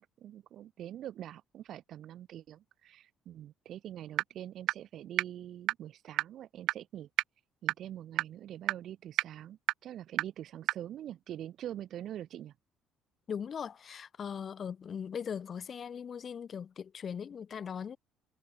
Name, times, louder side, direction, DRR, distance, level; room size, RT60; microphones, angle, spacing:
voice 1, 0.0-7.1 7.6-12.5, right 11 dB, 50° right, 3.1 m, -44 dB
sound 1, 4.2-4.3 4.7-4.8 5.2-5.3 5.7-5.8 6.2-6.3 6.7-6.8 7.2-7.3 7.7-7.8 8.2-8.3 8.7-8.8 9.2-9.3 9.7-9.8 10.2-10.3 10.7-10.8, right 16 dB, 75° right, 0.8 m, -26 dB
voice 2, 13.3-18.0, left 7 dB, 30° left, 3.2 m, -39 dB
cardioid pair, 170°, 0 cm